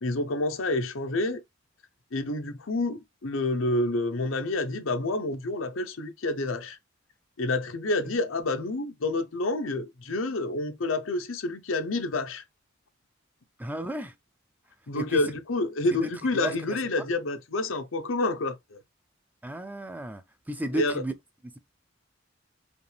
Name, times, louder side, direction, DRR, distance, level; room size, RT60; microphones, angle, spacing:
voice 1, 0.0-1.4 2.1-6.8 7.4-12.4 14.9-18.8 20.7-20.9, left 2 dB, 90° left, 0.8 m, -28 dB
voice 2, 13.6-14.1 15.0-15.2 15.9-16.8 19.4-21.1 21.4-21.6, right 1 dB, 10° right, 0.4 m, -34 dB
5.1 x 2.5 x 3.3 m
head